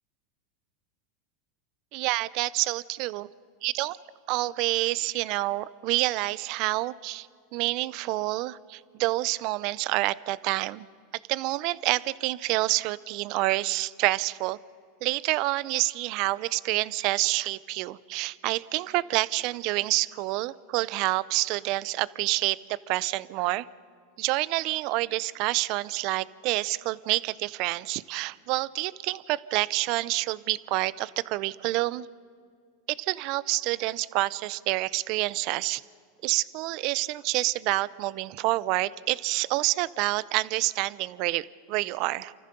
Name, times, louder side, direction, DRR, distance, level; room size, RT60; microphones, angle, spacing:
voice 1, 1.9-3.3 3.6-4.0 4.3-10.9 11.3-14.6 15.0-23.7 24.2-32.1 32.9-35.8 36.2-42.3, right 19 dB, 55° right, 20 dB, 0.6 m, -28 dB
28.0 x 14.5 x 6.9 m, 2.1 s
supercardioid pair, 125°, 0 cm